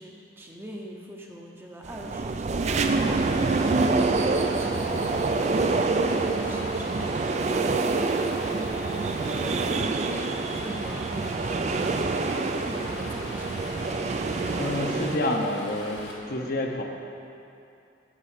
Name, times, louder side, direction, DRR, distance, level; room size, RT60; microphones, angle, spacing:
voice 1, 0.0-8.8 9.1-13.6, right 1 dB, 10° right, -1 dB, 0.7 m, -42 dB
sound 1, 1.8-15.2, right 3 dB, 35° right, 0.3 m, -26 dB
Stream, 2.6-16.1, left 1 dB, 70° left, 1.4 m, -40 dB
voice 2, 14.6-16.8, left 1 dB, 50° left, 1 dB, 0.8 m, -28 dB
11.0 x 3.7 x 7.3 m, 2.6 s
head